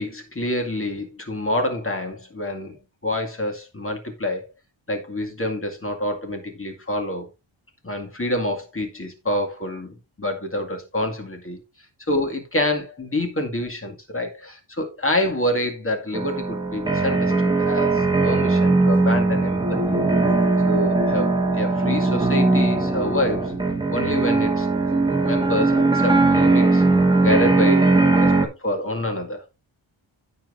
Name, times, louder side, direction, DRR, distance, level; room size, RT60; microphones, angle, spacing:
voice 1, 0.0-2.8 3.0-4.5 4.9-7.3 7.8-11.6 12.1-19.8 20.6-23.5 23.9-24.7 25.0-26.8 27.2-29.4, left 1 dB, 25° left, 2.1 m, -27 dB
sound 1, 16.1-28.4, right 3 dB, 10° right, 1.3 m, -19 dB
16.5 x 5.5 x 2.5 m
wide cardioid pair, 140°, 47 cm